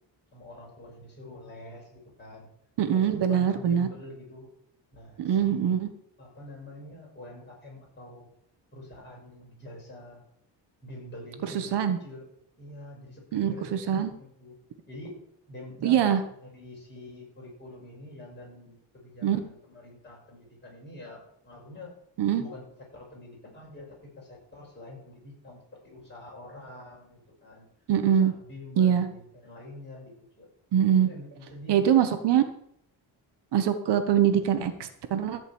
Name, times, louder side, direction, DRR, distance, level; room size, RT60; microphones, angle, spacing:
voice 1, 0.3-2.5 2.9-4.5 4.9-5.8 6.2-8.3 8.7-10.2 10.8-12.2 12.6-14.6 14.9-15.2 15.5-16.0 16.4-22.0 22.4-22.6 22.9-27.6 28.0-30.5 30.9-32.2, left 1 dB, 25° left, -3 dB, 6.2 m, -46 dB
voice 2, 2.8-3.9 5.2-5.9 11.5-12.0 13.3-14.1 15.8-16.2 19.2-19.4 22.2-22.4 27.9-28.3 28.8-29.1 30.7-31.1 31.7-32.4 33.5-35.4, right 9 dB, 65° right, 8 dB, 1.3 m, -23 dB
14.0 x 5.3 x 8.8 m, 0.69 s
cardioid pair, 165°, 44 cm